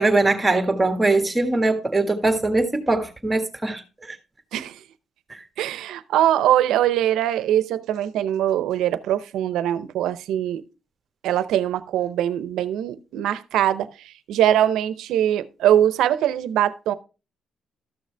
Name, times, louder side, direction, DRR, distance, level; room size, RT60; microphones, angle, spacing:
voice 1, 0.0-4.2 5.3-5.4, right 2 dB, 15° right, 1.6 m, -21 dB
voice 2, 4.5-4.8 5.6-10.6 11.2-16.9, right 11 dB, 85° right, 0.7 m, -22 dB
13.0 x 6.6 x 3.3 m
cardioid pair, 90°, 0 cm